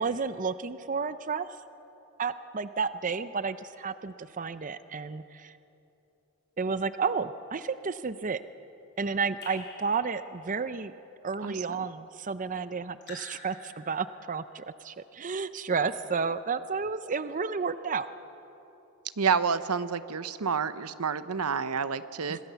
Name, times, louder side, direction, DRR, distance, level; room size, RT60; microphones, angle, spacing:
voice 1, 0.0-1.5 2.2-5.6 6.6-8.4 9.0-10.9 11.2-18.1 22.3-22.4, right 5 dB, 35° right, 13 dB, 0.6 m, -31 dB
Raindrop / Drip, 9.4-10.6 13.0-14.4, left 4 dB, 50° left, 4.1 m, -48 dB
voice 2, 19.2-22.4, right 6 dB, 90° right, 13 dB, 0.8 m, -29 dB
26.0 x 20.5 x 6.9 m, 3.0 s
head